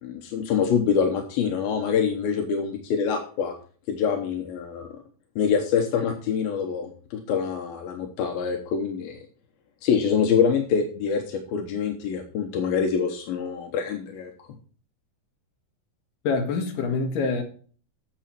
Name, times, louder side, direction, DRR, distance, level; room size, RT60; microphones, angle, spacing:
voice 1, 0.0-3.5 3.9-5.0 5.4-9.2 9.8-14.5, left 6 dB, 80° left, 2.9 m, -25 dB
voice 2, 16.2-17.4, left 4 dB, 65° left, 3.2 m, -25 dB
11.0 x 7.1 x 4.4 m
omnidirectional pair, 4.2 m